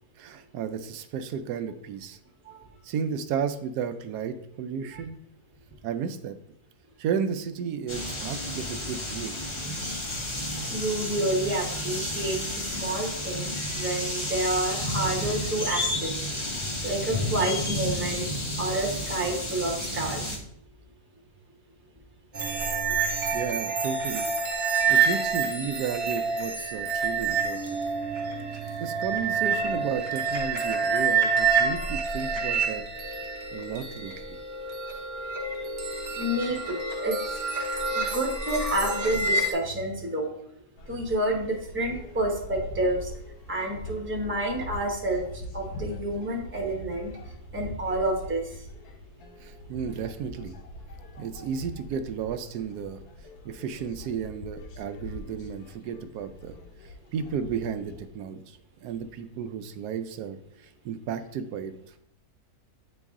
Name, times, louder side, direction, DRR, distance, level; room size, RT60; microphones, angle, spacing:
voice 1, 0.2-2.2 2.8-5.2 5.8-6.4 7.0-9.4 23.3-24.3 24.9-27.8 28.5-32.8 33.5-34.4 49.4-50.6 51.2-53.0 53.4-61.9, right 7 dB, 90° right, 8 dB, 1.1 m, -33 dB
sound 1, 7.9-20.4, left 1 dB, 30° left, 0.6 m, -31 dB
voice 2, 10.7-16.3 16.8-18.3 18.6-20.4 36.2-40.3 40.9-43.1 43.5-47.2 47.5-48.6, right 1 dB, 10° right, -1 dB, 0.8 m, -29 dB
sound 2, 22.3-39.5, right 5 dB, 45° right, 0.7 m, -28 dB
sound 3, 40.8-58.1, left 1 dB, 80° left, 1.2 m, -43 dB
8.4 x 3.1 x 3.6 m, 0.72 s
omnidirectional pair, 1.6 m